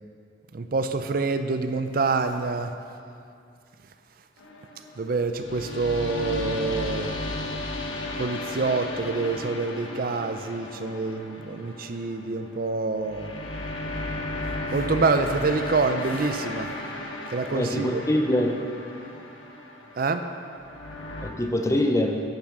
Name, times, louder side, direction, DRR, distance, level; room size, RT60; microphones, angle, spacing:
voice 1, 0.5-2.7 5.0-7.1 8.2-13.3 14.7-16.7 17.3-18.0 20.0-20.3, right 3 dB, 45° right, 8 dB, 0.4 m, -26 dB
sound 1, 4.4-21.3, left 2 dB, 85° left, 1.2 m, -35 dB
voice 2, 17.5-18.6 21.2-22.2, left 1 dB, 15° left, 4 dB, 0.6 m, -24 dB
9.7 x 7.2 x 6.0 m, 2.5 s
head